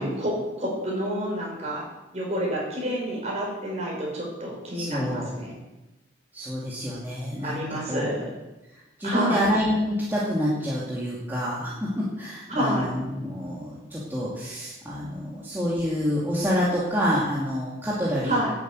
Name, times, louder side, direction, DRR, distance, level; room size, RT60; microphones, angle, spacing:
voice 1, 0.0-1.8 2.1-5.5 7.4-8.3 9.0-9.5 12.5-12.9 18.2-18.5, equal, 35° right, -3 dB, 5.4 m, -29 dB
voice 2, 4.7-5.4 6.3-8.1 8.7-18.4, equal, 10° right, -7 dB, 2.4 m, -27 dB
11.5 x 8.1 x 8.2 m, 1.1 s
head